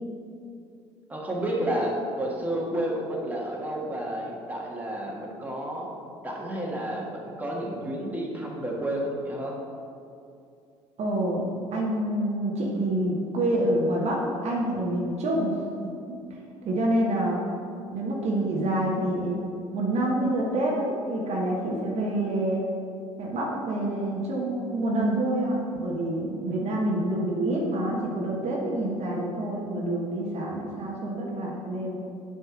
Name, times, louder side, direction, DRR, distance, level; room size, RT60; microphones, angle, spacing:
voice 1, 1.1-5.9 6.2-9.5, right 1 dB, 10° right, -3 dB, 1.6 m, -31 dB
voice 2, 11.0-15.7 16.1-17.4 17.9-19.4 19.7-22.6 23.2-31.9, right 1 dB, 45° right, -3 dB, 1.2 m, -27 dB
7.8 x 3.4 x 6.1 m, 2.5 s
hypercardioid pair, 60°, 15 cm